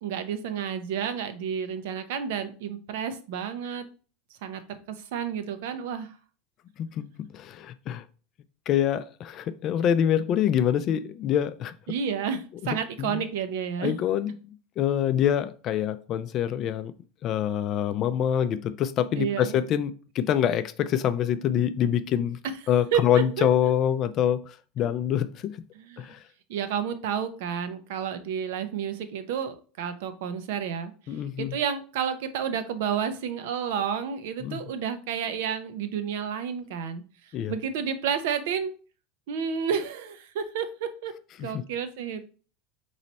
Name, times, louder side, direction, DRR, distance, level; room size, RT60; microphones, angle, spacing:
voice 1, 0.0-3.9 4.4-6.1 11.9-13.9 19.2-19.5 22.9-23.5 25.8-26.1 26.5-30.9 31.4-37.0 37.5-38.7 39.3-41.1 41.4-42.3, right 7 dB, 75° right, 0.6 m, -30 dB
voice 2, 7.3-8.0 8.7-11.7 12.6-13.2 13.8-16.9 17.2-22.4 22.7-25.6 26.0-26.2 31.1-31.6 34.4-34.6 37.3-37.5 41.4-41.6, left 9 dB, 40° left, 0.4 m, -26 dB
4.0 x 3.1 x 4.1 m
supercardioid pair, 130°, 0 cm